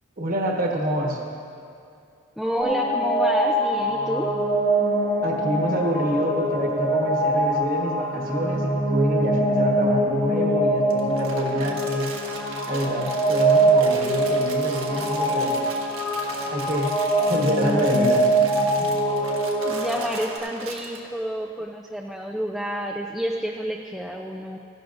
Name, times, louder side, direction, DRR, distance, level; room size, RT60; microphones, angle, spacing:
voice 1, 0.2-1.2 5.2-12.1 12.7-15.6 16.5-16.9 17.3-18.3 18.8-18.9, equal, 40° right, 0 dB, 1.3 m, -27 dB
voice 2, 2.4-4.3 19.6-24.6, equal, ahead, -1 dB, 0.3 m, -29 dB
sound 1, 2.6-20.4, right 1 dB, 25° left, 1.3 m, -23 dB
Crumpling crinkling, 10.9-21.0, right 4 dB, 80° right, 1.4 m, -39 dB
16.0 x 12.0 x 2.5 m, 2.5 s
head